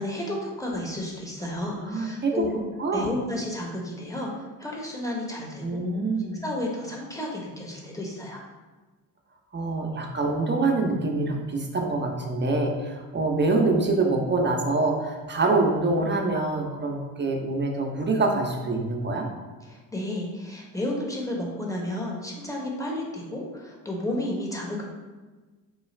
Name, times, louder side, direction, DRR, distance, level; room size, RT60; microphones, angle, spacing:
voice 1, 0.0-2.6 2.9-4.3 4.6-5.8 6.4-8.4 19.7-24.8, left 1 dB, 5° left, -2 dB, 0.9 m, -32 dB
voice 2, 1.8-2.4 2.8-3.1 5.6-6.4 9.5-19.3, right 3 dB, 25° right, 1 dB, 0.7 m, -25 dB
3.9 x 2.3 x 3.2 m, 1.3 s
hypercardioid pair, 50°, 47 cm